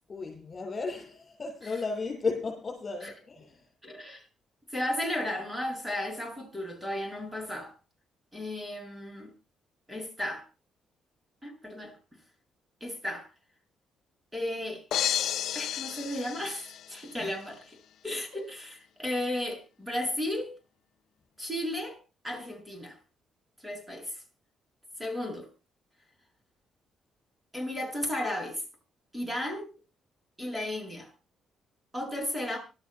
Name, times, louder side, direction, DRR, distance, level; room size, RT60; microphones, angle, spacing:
voice 1, 0.1-3.6, left 4 dB, 35° left, 7.4 m, -34 dB
voice 2, 3.8-4.2 4.7-7.7 8.3-9.3 9.9-10.4 11.4-11.9 12.8-13.3 14.3-14.8 15.5-17.8 18.0-20.5 21.4-22.0 22.2-23.0 23.6-24.1 25.0-25.5 27.5-28.6 29.1-29.7 30.4-31.1 31.9-32.6, left 1 dB, 10° right, 7.5 m, -34 dB
sound 1, 14.9-17.2, left 11 dB, 75° left, 0.6 m, -32 dB
25.5 x 13.0 x 2.2 m
cardioid pair, 90°, 0 cm